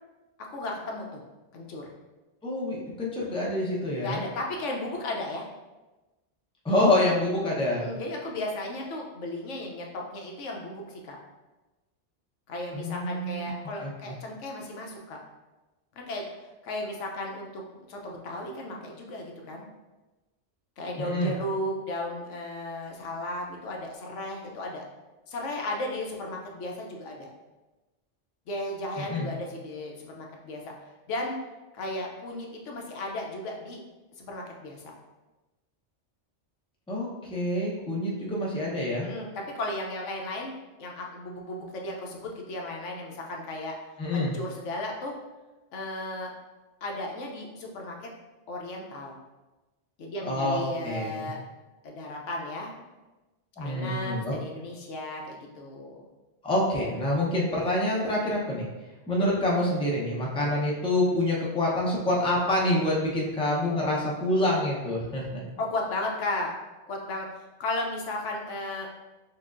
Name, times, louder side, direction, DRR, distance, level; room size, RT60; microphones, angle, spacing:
voice 1, 0.4-1.2 1.5-1.9 4.0-5.5 7.7-11.2 12.5-15.2 16.0-16.2 16.6-17.6 17.9-19.6 20.8-24.8 25.3-27.3 28.5-30.7 31.1-31.4 31.7-33.8 34.2-34.9 39.0-40.5 40.8-43.7 44.1-45.1 45.7-46.3 46.8-48.1 48.5-49.2 50.0-51.4 51.8-52.7 53.6-56.0 65.6-66.5 66.9-68.9, left 1 dB, 80° left, 0 dB, 1.0 m, -35 dB
voice 2, 2.4-4.2 6.6-7.9 12.7-13.5 13.8-14.1 21.0-21.3 29.0-29.3 36.9-39.1 44.0-44.3 50.2-51.3 53.6-54.3 56.4-58.7 59.1-65.4, left 1 dB, 5° left, -4 dB, 0.6 m, -27 dB
6.3 x 2.4 x 2.5 m, 1.1 s
omnidirectional pair, 1.2 m